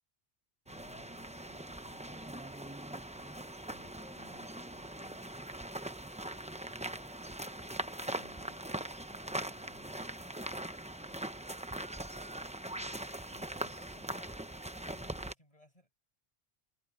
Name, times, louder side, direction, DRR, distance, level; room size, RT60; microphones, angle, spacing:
voice 1, 0.6-2.8 3.1-5.2 6.2-10.3 10.9-11.3 13.1-16.0, left 1 dB, 35° left, 5.7 m, -62 dB
sound 1, 0.7-15.3, right 1 dB, 10° right, 0.7 m, -41 dB
omnidirectional pair, 1.1 m